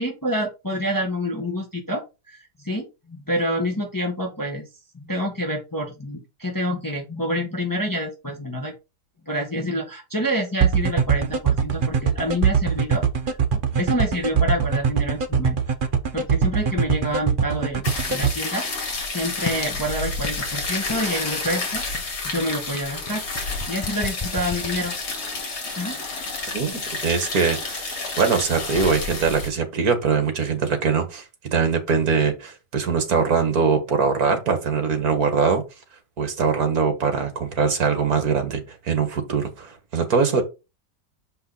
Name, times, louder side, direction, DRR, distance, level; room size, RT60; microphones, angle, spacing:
voice 1, 0.0-2.0 2.3-4.7 4.9-8.7 9.3-13.4 13.8-15.6 16.1-21.8 22.2-23.2 23.7-24.9 25.7-26.0, equal, 10° left, 1.4 m, -27 dB
sound 1, 10.6-18.3, right 7 dB, 40° right, 0.8 m, -21 dB
sound 2, 17.8-29.5, left 3 dB, 70° left, 2.6 m, -30 dB
sound 3, 19.4-19.8 20.2-20.5 20.9-21.1 21.4-21.7 21.9-25.3, left 4 dB, 30° left, 0.6 m, -34 dB
voice 2, 26.5-31.2 31.5-35.6 36.2-40.4, right 5 dB, 60° right, 2.0 m, -22 dB
6.2 x 5.4 x 4.1 m
omnidirectional pair, 1.8 m